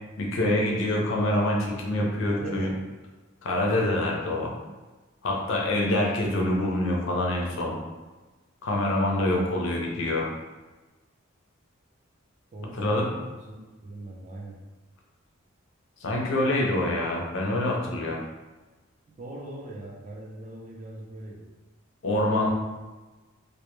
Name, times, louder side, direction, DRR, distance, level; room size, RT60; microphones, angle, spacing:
voice 1, 0.2-2.7 3.4-4.5 5.2-7.8 8.6-10.3 12.8-13.1 16.0-18.2 22.0-22.5, left 1 dB, 65° left, -1 dB, 0.5 m, -26 dB
voice 2, 1.9-2.8 12.5-14.6 19.1-21.5, right 1 dB, 35° right, -2 dB, 0.4 m, -41 dB
2.1 x 2.1 x 3.0 m, 1.2 s
head